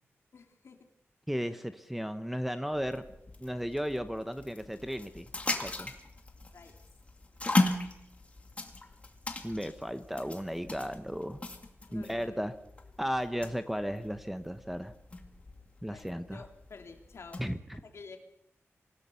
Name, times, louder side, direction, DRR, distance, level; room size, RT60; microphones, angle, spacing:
voice 1, 0.3-0.8 6.5-6.8 11.9-12.4 15.9-17.4 17.9-18.2, left 4 dB, 65° left, 3 dB, 3.1 m, -50 dB
voice 2, 1.3-3.0 3.4-5.3 5.6-5.9 9.4-11.4 11.9-12.5 13.0-14.9 15.8-16.5 17.4-17.8, equal, 5° right, 9 dB, 0.9 m, -35 dB
sound 1, 2.7-17.6, left 2 dB, 25° left, 2.1 m, -37 dB
26.0 x 16.5 x 7.0 m, 0.82 s
wide cardioid pair, 165°, 5 cm